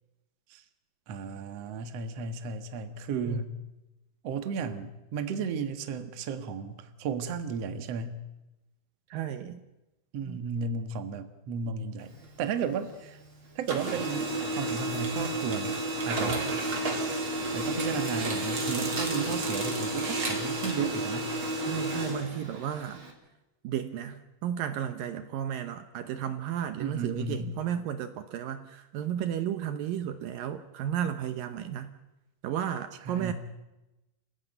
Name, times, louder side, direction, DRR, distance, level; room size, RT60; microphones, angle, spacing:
voice 1, 1.1-3.5 4.2-8.2 10.1-13.2 13.6-15.8 16.0-16.4 16.9-17.3 17.5-21.3 26.8-27.5 33.1-33.3, right 5 dB, 55° right, 9 dB, 2.1 m, -34 dB
voice 2, 9.1-9.6 10.3-10.4 21.7-23.0 23.6-31.9 32.4-33.3, right 10 dB, 70° right, 10 dB, 2.5 m, -33 dB
Printer, 12.0-13.3 13.5-23.1, right 2 dB, 35° right, 4.2 m, -31 dB
27.0 x 16.5 x 9.2 m, 0.99 s
omnidirectional pair, 4.4 m